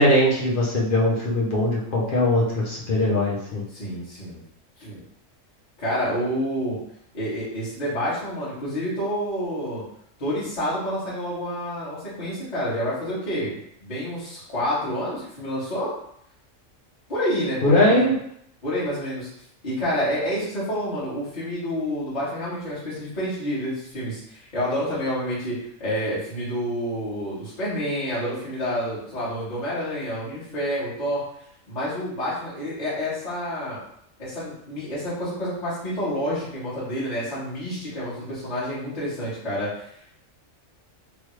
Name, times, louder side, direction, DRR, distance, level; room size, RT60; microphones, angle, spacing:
voice 1, 0.0-3.6 17.6-18.1, left 1 dB, 50° left, -4 dB, 0.8 m, -20 dB
voice 2, 3.7-4.4 4.8-5.0 5.8-6.8 7.1-9.8 10.2-15.9 17.1-18.1 18.6-19.3 19.6-25.5 25.8-31.2 31.7-33.8 34.2-39.9, equal, 35° left, -11 dB, 1.5 m, -28 dB
3.2 x 2.3 x 3.1 m, 0.71 s
omnidirectional pair, 1.4 m